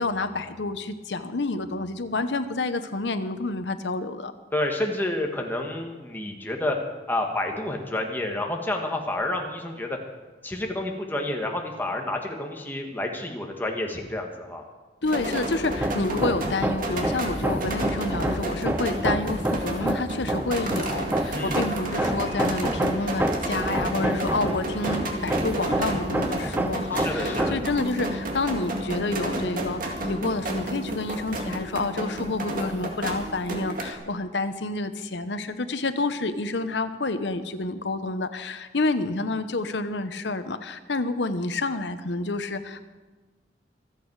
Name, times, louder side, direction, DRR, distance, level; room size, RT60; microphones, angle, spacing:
voice 1, 0.0-4.3 15.0-42.9, left 2 dB, 85° left, 10 dB, 1.0 m, -29 dB
voice 2, 4.5-6.8 7.1-10.0 10.4-14.6 21.3-21.6 26.9-27.6, left 1 dB, 10° left, 1 dB, 1.8 m, -29 dB
sound 1, 15.0-33.9, right 1 dB, 50° right, 2.0 m, -31 dB
Hammer, 15.7-27.8, right 1 dB, 10° right, 0.6 m, -29 dB
sound 2, 21.0-26.0, equal, 30° right, 2.7 m, -42 dB
25.0 x 8.5 x 4.8 m, 1.3 s
head